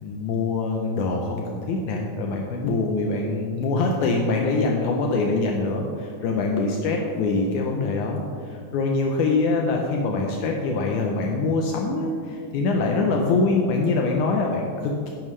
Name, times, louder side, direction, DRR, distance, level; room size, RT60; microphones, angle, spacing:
voice 1, 0.0-15.1, left 3 dB, 75° left, 1 dB, 2.1 m, -24 dB
11.0 x 10.5 x 3.2 m, 2.3 s
omnidirectional pair, 3.7 m